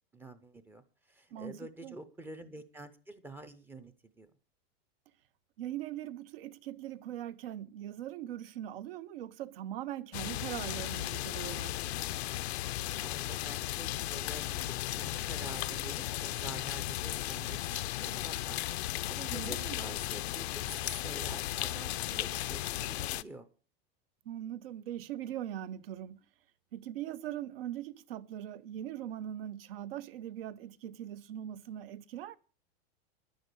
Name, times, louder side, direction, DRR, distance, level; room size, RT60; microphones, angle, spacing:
voice 1, 0.1-4.3 13.0-14.6 14.9-23.5, right 2 dB, 5° right, 0.6 m, -48 dB
voice 2, 1.3-2.0 5.6-11.9 19.3-19.8 24.2-26.2 26.7-32.4, right 11 dB, 65° right, 1.0 m, -41 dB
sound 1, 10.1-23.2, left 15 dB, 80° left, 0.7 m, -36 dB
11.0 x 10.5 x 6.8 m
supercardioid pair, 165°, 32 cm